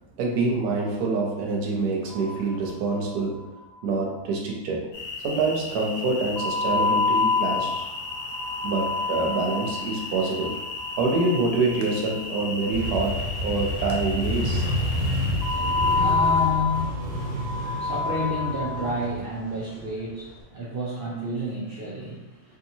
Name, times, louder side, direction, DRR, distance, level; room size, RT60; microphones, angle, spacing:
voice 1, 0.2-3.5 3.8-4.9 5.2-7.9 8.6-10.6 11.0-14.6, right 3 dB, 85° right, 0 dB, 1.2 m, -26 dB
sound 1, 2.1-3.1 3.4-3.5 3.7-3.8 6.4-12.5 15.4-19.0, left 4 dB, 70° left, 1.2 m, -27 dB
sound 2, 4.9-16.0, left 3 dB, 45° left, 1.2 m, -36 dB
Motorcycle, 12.7-20.4, left 1 dB, 45° right, 1.1 m, -29 dB
voice 2, 14.9-22.6, left 1 dB, 60° right, -5 dB, 0.6 m, -31 dB
3.3 x 2.7 x 2.7 m, 0.98 s
omnidirectional pair, 1.6 m